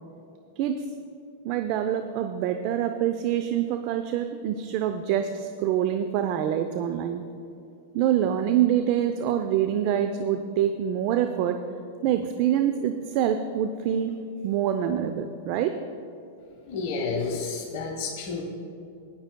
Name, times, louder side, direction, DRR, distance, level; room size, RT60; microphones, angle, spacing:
voice 1, 1.4-7.2 7.9-11.6 12.0-14.1 14.4-15.8, right 10 dB, 50° right, 8 dB, 0.5 m, -25 dB
voice 2, 16.7-18.4, left 4 dB, 55° left, 0 dB, 1.2 m, -30 dB
17.0 x 10.5 x 2.3 m, 2.6 s
hypercardioid pair, 105°, 0 cm